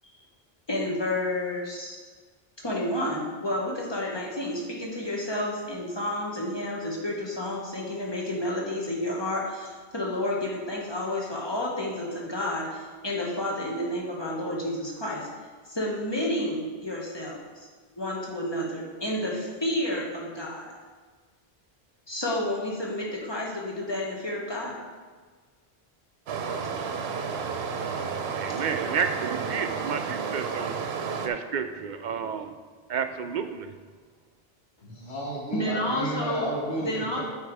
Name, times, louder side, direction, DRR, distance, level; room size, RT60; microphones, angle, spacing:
voice 1, 0.7-2.0 2.6-15.3 15.6-20.7 22.1-24.7 35.5-36.4 36.8-37.2, left 1 dB, 25° left, -3 dB, 1.4 m, -30 dB
Stream, 26.3-31.3, right 5 dB, 85° right, 0.9 m, -31 dB
voice 2, 28.3-30.8 31.2-32.5 32.9-33.7, right 6 dB, 60° right, 8 dB, 0.6 m, -31 dB
voice 3, 34.8-37.2, right 1 dB, 85° left, -6 dB, 2.4 m, -32 dB
8.1 x 4.9 x 4.7 m, 1.5 s
omnidirectional pair, 1.0 m